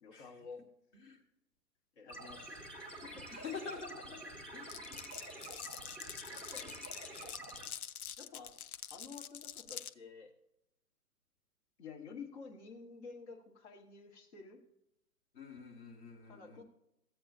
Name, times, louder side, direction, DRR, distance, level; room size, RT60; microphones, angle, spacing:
voice 1, 0.0-0.6 2.0-2.6 3.0-3.3 6.3-6.8 8.2-8.5 8.9-10.3 11.8-14.6 16.3-16.6, left 5 dB, 45° left, 2 dB, 1.6 m, -51 dB
sound 1, 2.1-7.7, right 1 dB, 5° left, 1.0 m, -48 dB
voice 2, 3.3-4.2 4.5-4.8 15.3-16.6, left 5 dB, 20° left, 0 dB, 1.3 m, -46 dB
Glass, 4.7-9.9, left 9 dB, 65° left, 0.5 m, -46 dB
15.0 x 7.6 x 2.7 m, 0.83 s
figure-of-eight pair, 120°, 48 cm